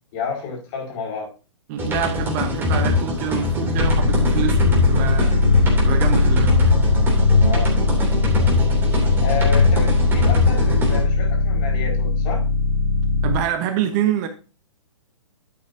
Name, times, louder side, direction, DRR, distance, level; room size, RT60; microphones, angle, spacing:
voice 1, 0.1-1.3 7.4-7.7 9.2-12.4, left 5 dB, 40° left, -1 dB, 5.2 m, -30 dB
voice 2, 1.7-5.3 5.8-6.6 13.2-14.3, right 10 dB, 35° right, 7 dB, 1.1 m, -26 dB
sound 1, 1.8-11.0, left 3 dB, 15° right, 3.0 m, -23 dB
sound 2, 3.7-13.4, left 3 dB, 75° left, 2.0 m, -19 dB
11.0 x 8.4 x 2.8 m, 0.33 s
figure-of-eight pair, 120°, 16 cm